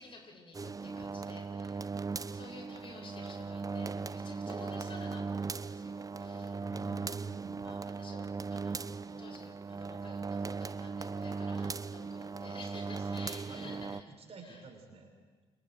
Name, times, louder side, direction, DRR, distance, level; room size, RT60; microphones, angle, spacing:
voice 1, 0.0-7.1 7.6-14.0 14.4-14.6, left 3 dB, 35° left, 0 dB, 7.5 m, -52 dB
sound 1, 0.5-14.0, right 4 dB, 25° right, 0.9 m, -38 dB
voice 2, 6.5-7.6 12.4-15.1, right 3 dB, 45° right, 3 dB, 5.9 m, -50 dB
29.0 x 27.5 x 4.9 m, 1.4 s
hypercardioid pair, 50°, 15 cm